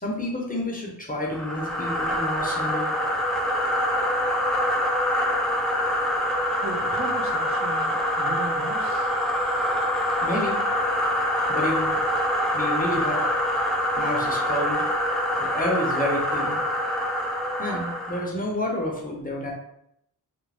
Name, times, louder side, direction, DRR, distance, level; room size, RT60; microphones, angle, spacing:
voice 1, 0.0-3.1 10.2-10.6 11.5-12.0 12.5-13.3 14.0-14.9 15.4-16.6 17.6-19.5, left 1 dB, 20° left, -1 dB, 0.7 m, -29 dB
sound 1, 1.3-18.3, equal, ahead, 0.3 m, -25 dB
voice 2, 6.6-9.1, right 2 dB, 35° right, -1 dB, 0.6 m, -37 dB
2.5 x 2.1 x 3.3 m, 0.77 s
wide cardioid pair, 50°, 40 cm